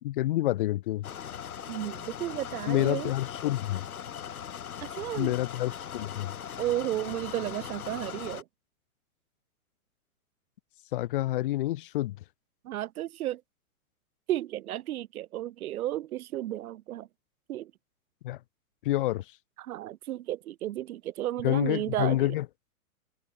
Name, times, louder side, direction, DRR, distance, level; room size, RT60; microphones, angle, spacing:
voice 1, 0.0-1.1 2.7-3.9 5.2-6.3 10.9-12.2 18.2-18.4 18.8-19.2 21.4-22.5, left 15 dB, 40° left, 0.4 m, -28 dB
sound 1, 1.0-8.4, left 9 dB, 85° left, 3.3 m, -40 dB
voice 2, 1.7-3.1 4.8-5.4 6.6-8.4 12.6-13.4 14.3-17.1 17.5-17.7 19.6-22.4, right 13 dB, 80° right, 0.7 m, -33 dB
hypercardioid pair, 145°, 42 cm